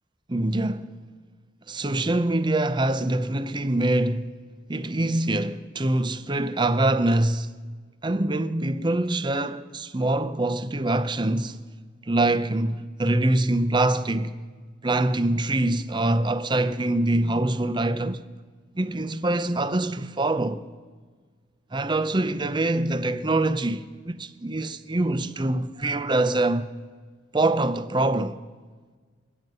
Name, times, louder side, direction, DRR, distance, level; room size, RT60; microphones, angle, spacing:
voice 1, 0.3-0.9 1.7-4.4 4.7-7.5 8.0-11.6 12.0-14.3 14.8-18.2 18.7-20.6 21.7-26.7 27.3-28.4, right 2 dB, 25° right, 0.6 m, -24 dB
26.5 x 9.2 x 5.4 m
head